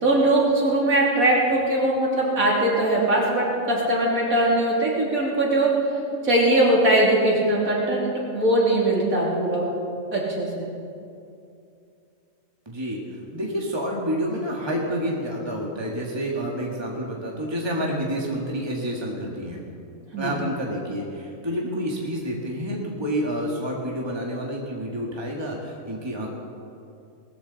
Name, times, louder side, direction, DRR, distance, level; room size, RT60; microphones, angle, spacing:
voice 1, 0.0-5.7 6.2-9.6 10.1-10.7 20.1-20.3, right 1 dB, 75° right, -4 dB, 3.5 m, -21 dB
voice 2, 12.7-19.6 20.2-26.3, equal, 20° right, -2 dB, 1.8 m, -29 dB
20.0 x 14.0 x 4.1 m, 2.6 s
omnidirectional pair, 1.5 m